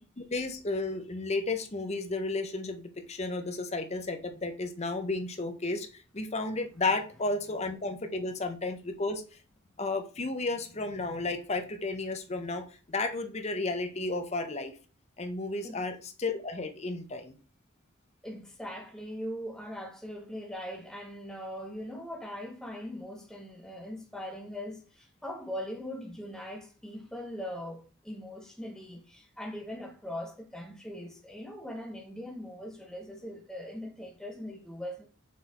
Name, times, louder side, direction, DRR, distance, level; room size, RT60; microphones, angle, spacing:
voice 1, 0.2-9.2 9.8-14.7 15.2-17.4, left 3 dB, 35° left, 0.8 m, -33 dB
voice 2, 18.2-35.1, equal, 5° left, 0.8 m, -41 dB
6.3 x 3.9 x 4.2 m
head